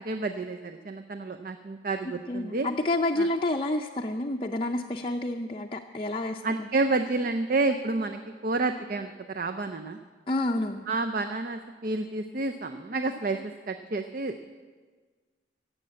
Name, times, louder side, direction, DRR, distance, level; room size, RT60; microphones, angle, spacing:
voice 1, 0.0-2.7 3.2-3.3 6.4-10.0 10.9-14.3, right 3 dB, 50° right, 7 dB, 0.5 m, -30 dB
voice 2, 2.3-6.7 10.3-10.9, left 2 dB, 30° left, 1 dB, 0.5 m, -29 dB
16.0 x 7.8 x 8.6 m, 1.5 s
head